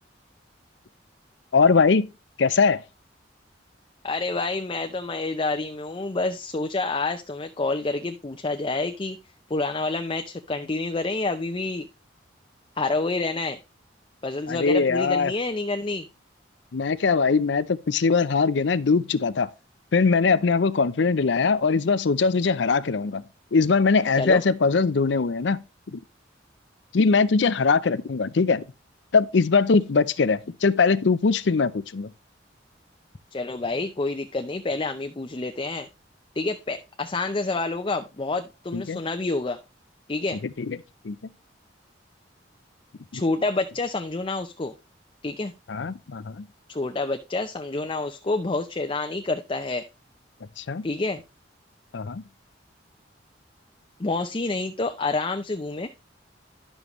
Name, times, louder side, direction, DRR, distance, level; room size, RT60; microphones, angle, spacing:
voice 1, 1.5-2.1 2.4-2.8 14.5-15.3 16.7-19.5 19.9-23.2 23.5-25.6 25.9-26.0 26.9-28.6 29.1-32.1 38.7-39.0 40.6-40.8 41.0-41.2 43.1-43.2 45.7-46.5 50.6-50.9 51.9-52.2, left 4 dB, 70° left, 0.5 m, -21 dB
voice 2, 4.0-9.2 9.5-11.9 12.8-13.6 14.2-16.1 24.2-24.4 33.3-35.9 36.4-39.6 40.1-40.4 43.1-44.7 45.2-45.5 46.7-49.8 50.8-51.2 54.0-55.9, left 3 dB, 30° left, 0.5 m, -28 dB
11.0 x 7.1 x 3.1 m
head